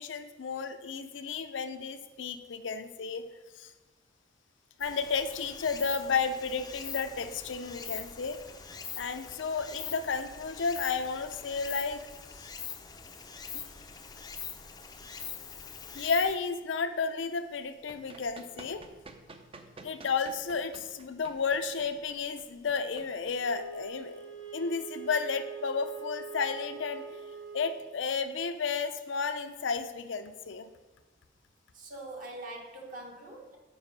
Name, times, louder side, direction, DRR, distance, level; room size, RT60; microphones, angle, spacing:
voice 1, 0.0-3.3 3.6-3.7 4.8-8.4 9.0-12.0 13.5-13.6 15.9-18.8 19.8-24.2 24.5-27.2 27.5-30.7, left 5 dB, 70° left, 9 dB, 0.5 m, -32 dB
Stream, 4.8-16.4, left 6 dB, 20° left, 0.5 m, -43 dB
Run, 17.5-24.0, right 2 dB, 30° right, 0.5 m, -51 dB
Wind instrument woodwind instrument, 23.4-27.9, right 6 dB, 75° right, 1.1 m, -44 dB
voice 2, 31.7-33.6, right 2 dB, 45° right, 0 dB, 1.1 m, -43 dB
7.0 x 4.9 x 5.1 m, 1.2 s
head